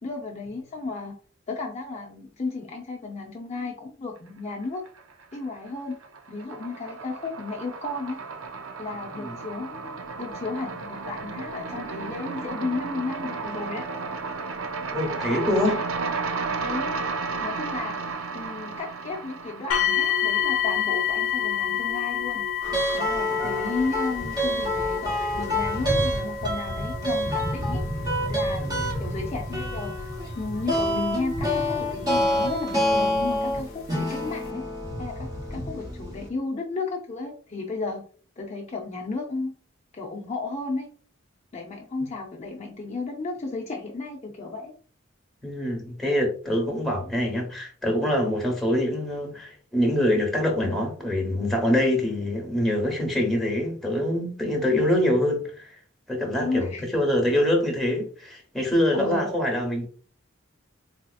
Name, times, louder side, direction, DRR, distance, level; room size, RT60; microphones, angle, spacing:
voice 1, 0.0-1.1 1.5-4.8 5.3-6.0 6.3-8.2 8.8-13.9 16.6-17.0 17.4-18.1 18.3-22.5 22.9-27.8 28.3-30.1 30.4-34.6 35.0-38.0 38.4-39.5 39.9-40.9 41.5-44.7 56.3-56.8 58.9-59.3, left 3 dB, 35° left, 0 dB, 0.5 m, -33 dB
sound 1, 4.6-5.4 5.7-20.9, right 4 dB, 80° right, 0.5 m, -33 dB
voice 2, 14.9-15.8 28.6-28.9 45.4-55.7 56.1-59.9, left 1 dB, ahead, 0 dB, 1.0 m, -25 dB
sound 2, 19.7-32.6 33.4-33.5 34.1-34.2, left 9 dB, 90° left, 0.5 m, -30 dB
sound 3, 22.6-36.3, equal, 20° right, 0.9 m, -27 dB
4.1 x 2.7 x 2.3 m, 0.42 s
head